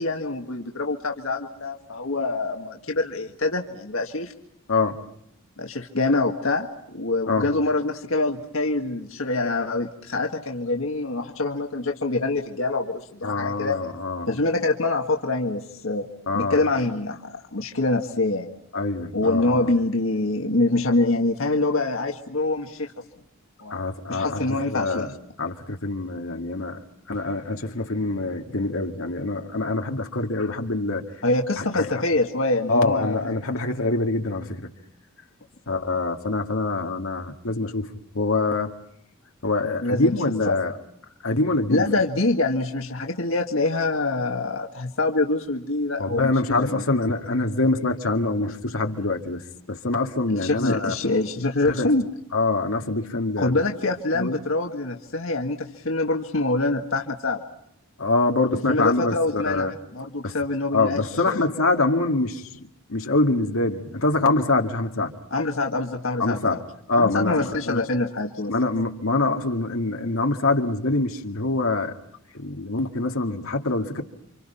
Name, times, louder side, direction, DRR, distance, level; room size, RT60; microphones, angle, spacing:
voice 1, 0.0-4.3 5.6-13.8 14.3-16.1 16.3-18.5 19.1-22.9 23.6-23.8 24.1-25.1 31.2-33.4 39.8-40.1 40.5-40.6 41.7-46.8 50.3-52.1 53.4-57.4 58.7-61.0 61.3-61.4 65.3-66.6 67.0-68.5, left 2 dB, 70° left, 1.8 m, -25 dB
voice 2, 4.7-5.0 7.3-7.5 13.2-14.3 16.3-16.6 18.7-19.7 23.7-25.1 25.4-31.0 31.6-32.0 32.7-34.7 35.7-38.7 39.4-40.7 41.2-41.8 46.0-50.9 51.7-51.9 52.3-53.6 54.1-54.4 58.0-59.7 60.2-60.3 60.7-65.1 66.2-66.6 66.9-67.9 68.5-71.9 72.3-74.0, left 2 dB, 85° left, 2.2 m, -25 dB
29.5 x 26.5 x 5.7 m
head